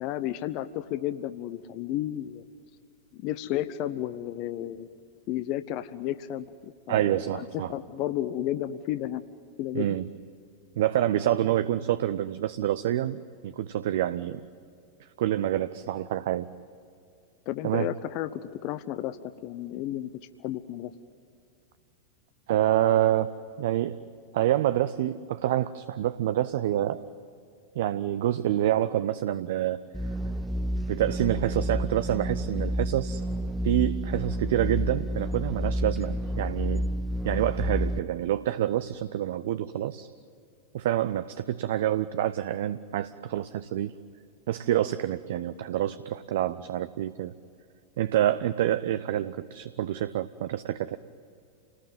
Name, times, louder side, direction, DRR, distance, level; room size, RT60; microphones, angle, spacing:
voice 1, 0.0-2.4 3.1-4.9 5.3-9.2 9.6-10.0 17.5-20.1 20.4-20.9, left 13 dB, 40° left, 12 dB, 0.9 m, -32 dB
voice 2, 6.9-7.7 9.7-10.1 10.8-14.4 15.2-16.5 17.6-17.9 22.5-24.0 24.3-27.0 27.8-29.8 30.9-33.2 33.6-36.9 37.2-40.1 40.7-43.9 44.5-47.3 48.0-51.0, right 12 dB, 55° right, 13 dB, 0.7 m, -27 dB
sound 1, 29.9-38.0, equal, 5° right, 0.8 m, -30 dB
29.0 x 20.0 x 9.4 m, 2.4 s
figure-of-eight pair, 90°, 0 cm